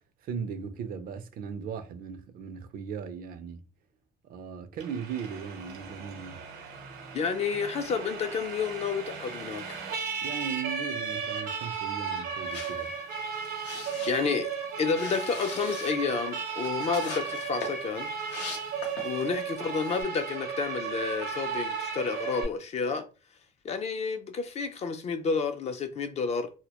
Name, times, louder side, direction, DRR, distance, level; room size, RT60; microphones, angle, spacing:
voice 1, 0.2-3.6 4.2-6.5 10.2-12.9, right 6 dB, 60° right, 0.4 m, -38 dB
Siren, 4.8-22.4, right 6 dB, 90° right, 0.8 m, -35 dB
voice 2, 7.1-9.8 14.1-14.5 14.8-18.1 19.0-23.1 23.6-26.5, left 5 dB, 40° left, 0.4 m, -30 dB
sound 1, 12.5-19.3 19.7-20.0, left 4 dB, 85° left, 0.8 m, -42 dB
2.1 x 2.0 x 2.8 m
cardioid pair, 110°, 17 cm